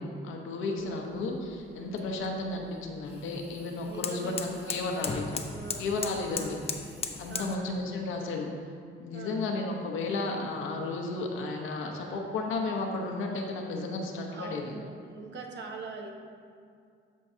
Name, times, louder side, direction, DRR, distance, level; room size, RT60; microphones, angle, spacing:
voice 1, 0.0-5.2 5.8-6.6 7.2-8.5 9.0-14.6, left 3 dB, 85° left, 1 dB, 0.9 m, -33 dB
sound 1, 0.8-7.6, left 4 dB, 30° left, 0.6 m, -39 dB
voice 2, 0.8-1.2 2.0-2.3 3.9-6.7 7.3-7.8 9.1-9.6 12.0-12.3 13.8-16.1, right 3 dB, 60° right, 2 dB, 1.0 m, -43 dB
13.0 x 4.6 x 2.7 m, 2.2 s
cardioid pair, 90°, 20 cm